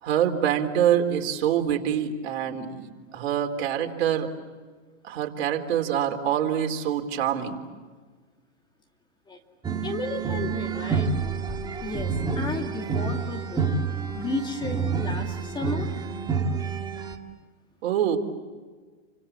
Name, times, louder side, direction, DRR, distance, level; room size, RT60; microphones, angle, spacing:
voice 1, 0.0-4.3 5.0-7.6 17.8-18.2, right 9 dB, 55° right, 4 dB, 4.1 m, -25 dB
sound 1, 9.6-17.2, right 5 dB, 10° right, 2.1 m, -28 dB
voice 2, 9.8-11.1 11.8-13.7 14.1-15.9, left 2 dB, 10° left, 3 dB, 2.5 m, -33 dB
29.5 x 26.0 x 7.4 m, 1.4 s
hypercardioid pair, 130°, 37 cm